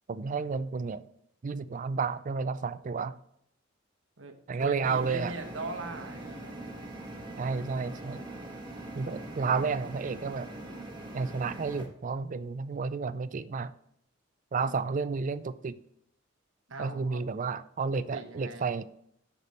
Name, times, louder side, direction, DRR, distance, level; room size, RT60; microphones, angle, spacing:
voice 1, 0.1-1.0 1.4-3.2 4.5-5.3 7.4-8.2 9.0-10.5 11.1-13.7 14.5-15.7 16.8-18.8, right 5 dB, 40° right, 0.4 m, -31 dB
voice 2, 4.2-6.7 8.8-9.4 14.6-14.9 16.7-17.2 17.8-18.7, right 2 dB, 90° right, 1.1 m, -42 dB
sound 1, 4.8-11.9, right 1 dB, 25° right, 1.4 m, -42 dB
8.2 x 6.1 x 4.1 m
head